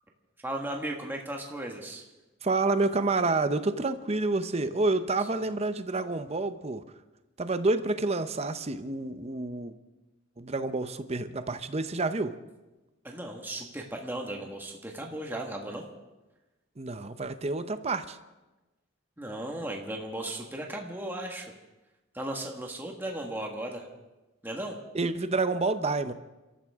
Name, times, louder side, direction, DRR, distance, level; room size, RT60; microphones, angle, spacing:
voice 1, 0.4-2.0 13.0-15.8 19.2-21.5 22.1-23.9 24.4-24.8, right 1 dB, 10° right, 0 dB, 1.6 m, -36 dB
voice 2, 2.4-6.8 7.4-9.7 10.4-12.3 16.8-18.2 24.9-26.1, right 3 dB, 30° right, 10 dB, 0.8 m, -28 dB
28.5 x 14.0 x 3.7 m, 1.1 s
head